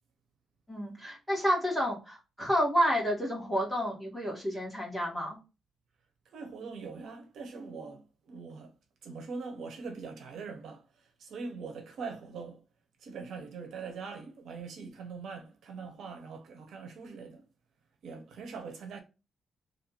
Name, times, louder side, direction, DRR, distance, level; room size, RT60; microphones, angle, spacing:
voice 1, 0.7-5.4, equal, 5° left, 1.8 m, -30 dB
voice 2, 6.3-8.7 9.0-10.8 11.2-12.6 13.0-17.4 18.0-19.0, right 4 dB, 75° right, 1.0 m, -42 dB
3.3 x 2.8 x 4.3 m
wide cardioid pair, 145°, 0 cm